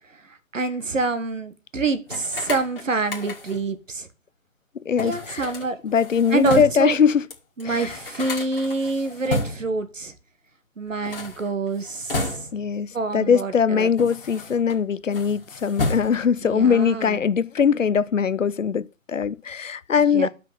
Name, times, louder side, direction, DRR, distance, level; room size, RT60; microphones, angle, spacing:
voice 1, 0.5-4.1 5.0-5.8 6.3-7.0 7.6-10.1 10.8-12.3 12.9-13.9 16.4-17.2 20.1-20.3, right 3 dB, 65° right, 1.4 m, -26 dB
sound 1, 2.1-3.7 5.0-6.9 7.3-7.4 7.6-9.8 10.9-12.8 13.5-14.8 15.1-16.4, left 2 dB, 40° left, 1.8 m, -32 dB
voice 2, 4.9-5.5 5.8-7.2 7.6-7.9 12.5-20.3, left 7 dB, 65° left, 0.6 m, -21 dB
5.9 x 5.1 x 6.7 m
figure-of-eight pair, 160°, 42 cm